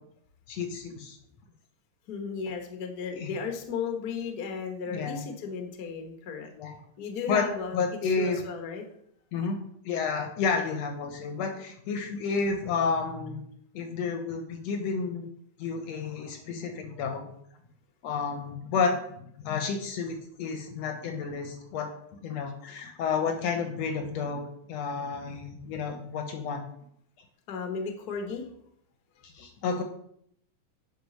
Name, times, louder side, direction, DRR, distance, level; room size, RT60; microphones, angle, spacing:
voice 1, 0.5-1.2 3.2-3.3 4.9-5.2 6.6-6.7 7.3-7.5 7.7-8.4 9.3-9.6 9.9-13.4 13.7-15.3 15.6-17.3 18.0-21.9 22.2-24.4 24.7-26.6 29.2-29.8, left 5 dB, 70° left, 5 dB, 1.8 m, -31 dB
voice 2, 2.1-6.5 7.0-7.8 8.0-8.8 27.5-28.5, left 5 dB, 55° left, 4 dB, 1.1 m, -35 dB
9.3 x 4.9 x 5.4 m, 0.71 s
omnidirectional pair, 3.5 m